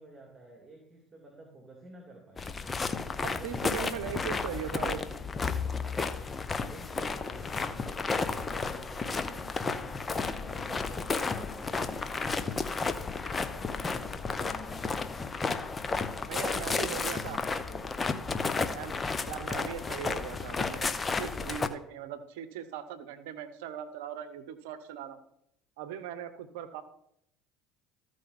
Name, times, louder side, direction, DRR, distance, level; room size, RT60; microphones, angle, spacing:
voice 1, 0.0-2.5 3.1-5.3 6.6-12.7 13.4-15.4 16.4-18.7, right 1 dB, 25° right, 0 dB, 2.5 m, -51 dB
sound 1, 2.4-21.7, left 4 dB, 25° left, 0.8 m, -32 dB
voice 2, 3.2-5.0 16.3-17.4 18.7-18.9 19.2-20.9 21.2-25.2 25.8-26.8, right 9 dB, 75° right, 12 dB, 0.8 m, -39 dB
14.0 x 4.9 x 4.2 m, 0.75 s
hypercardioid pair, 70°, 0 cm